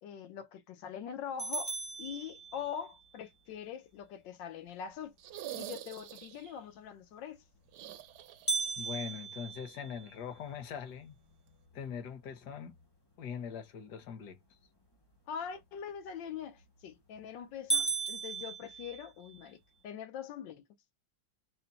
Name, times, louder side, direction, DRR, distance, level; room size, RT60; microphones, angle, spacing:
voice 1, 0.0-5.1 5.6-7.4 15.3-20.6, left 8 dB, 85° left, 1.5 m, -43 dB
sound 1, 1.4-3.0 8.5-10.6 11.1-11.2 11.7-11.8 12.5-12.8 16.4-16.8 17.2-17.3 17.7-19.4, right 4 dB, 40° left, 0.3 m, -36 dB
sound 2, 5.2-6.6 7.7-8.9 9.1-9.2 10.9-11.0, right 12 dB, 70° right, 1.2 m, -45 dB
voice 2, 8.8-11.2 11.7-12.8 13.2-14.4, left 7 dB, 65° left, 1.4 m, -42 dB
4.2 x 2.1 x 4.0 m
omnidirectional pair, 1.9 m